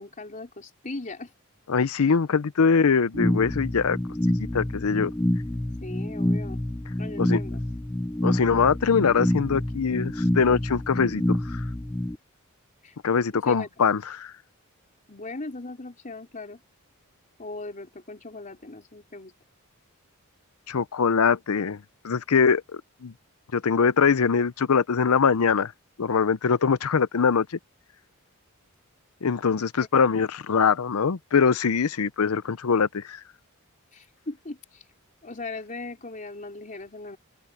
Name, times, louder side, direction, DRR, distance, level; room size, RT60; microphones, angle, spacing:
voice 1, 0.0-1.3 5.8-6.6 7.0-7.6 12.8-13.0 13.3-13.7 15.1-16.6 17.4-19.3 33.9-34.8 35.2-37.2, left 2 dB, 35° left, 3.9 m, -38 dB
voice 2, 1.7-4.0 4.5-5.1 7.2-7.4 8.2-11.6 13.0-14.3 20.7-21.8 22.0-23.1 23.5-25.7 26.0-27.5 29.2-33.2, left 5 dB, 80° left, 0.6 m, -23 dB
sound 1, 3.1-12.1, left 1 dB, 10° left, 0.5 m, -27 dB
head